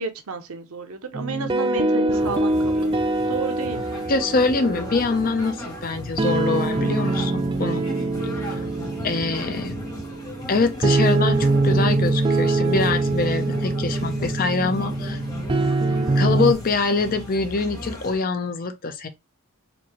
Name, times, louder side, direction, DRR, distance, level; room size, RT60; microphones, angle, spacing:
voice 1, 0.0-2.9 3.3-4.0, right 4 dB, 85° right, 0.8 m, -31 dB
sound 1, 1.1-16.5, right 2 dB, 20° right, 0.3 m, -24 dB
sound 2, 2.1-18.2, left 1 dB, 20° left, 1.3 m, -36 dB
voice 2, 4.1-7.8 9.0-9.8 10.5-15.2 16.2-19.1, left 4 dB, 40° left, 0.6 m, -24 dB
4.3 x 2.7 x 2.9 m
head